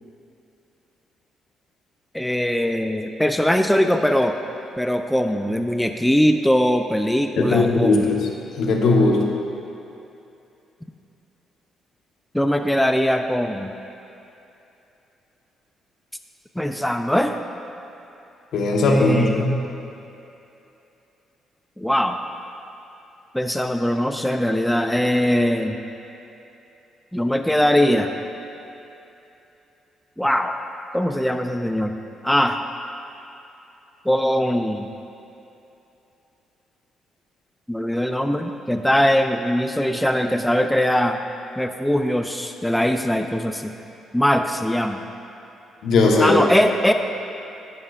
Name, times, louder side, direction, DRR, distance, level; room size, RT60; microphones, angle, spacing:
voice 1, 2.1-4.3 4.8-8.1 12.3-13.7 16.6-17.4 18.9-19.5 21.8-22.2 23.3-25.8 27.1-28.1 30.2-30.5 30.9-31.9 32.2-32.6 34.1-34.9 37.7-41.2 41.6-43.7 44.1-45.0 46.2-46.9, equal, 5° left, 6 dB, 0.3 m, -21 dB
voice 2, 7.4-8.2 8.6-9.2 18.5-19.5 45.8-46.4, left 3 dB, 70° left, 1 dB, 1.0 m, -18 dB
11.0 x 8.9 x 2.4 m, 2.9 s
cardioid pair, 90°, 0 cm